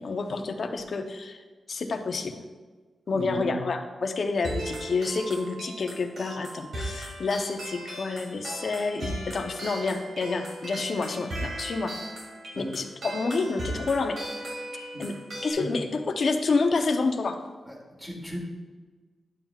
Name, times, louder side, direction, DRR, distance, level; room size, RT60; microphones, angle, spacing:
voice 1, 0.0-1.4 1.7-2.4 3.1-11.9 12.6-14.2 15.0-15.2 15.4-17.4, left 3 dB, 60° left, 5 dB, 0.7 m, -28 dB
voice 2, 3.1-3.6 12.5-12.6 14.9-15.1 15.6-15.7 18.0-18.4, equal, 15° right, -4 dB, 2.5 m, -35 dB
sound 1, 4.4-15.5, right 1 dB, 75° right, 2.5 m, -37 dB
10.5 x 7.3 x 2.4 m, 1.4 s
wide cardioid pair, 105°, 0 cm